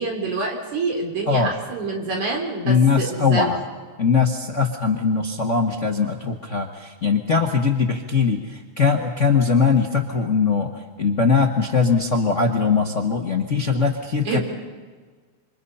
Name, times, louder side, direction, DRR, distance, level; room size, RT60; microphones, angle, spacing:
voice 1, 0.0-3.5 14.3-14.4, right 3 dB, 75° right, 1 dB, 5.4 m, -27 dB
voice 2, 2.6-3.6 4.0-14.4, left 5 dB, 35° left, 2 dB, 1.3 m, -21 dB
27.5 x 26.0 x 5.6 m, 1.5 s
omnidirectional pair, 3.4 m